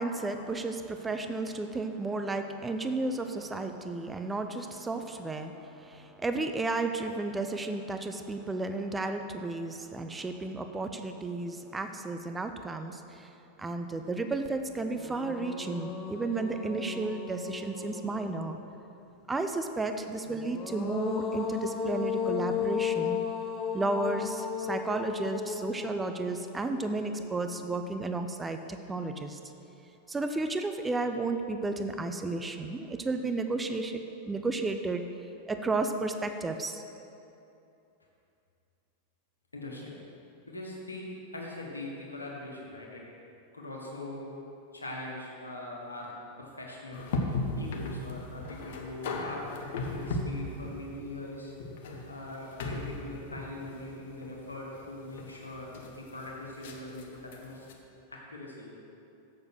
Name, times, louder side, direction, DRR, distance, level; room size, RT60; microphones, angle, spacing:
voice 1, 0.0-18.6 19.3-23.2 23.7-29.4 30.1-35.0 35.5-36.8, right 3 dB, 10° right, 7 dB, 0.5 m, -33 dB
sound 1, 14.4-14.5 14.9-18.6 20.3-27.5, left 7 dB, 30° left, 0.9 m, -35 dB
voice 2, 39.5-40.0 40.5-43.0 43.5-44.3 44.7-46.1 46.4-47.1 47.5-49.5 49.8-51.5 52.1-57.7 58.1-58.7, left 2 dB, 80° left, -2 dB, 1.6 m, -42 dB
sound 2, 46.9-57.7, left 2 dB, 55° left, 1.0 m, -37 dB
7.4 x 6.9 x 6.0 m, 2.7 s
figure-of-eight pair, 90°, 0 cm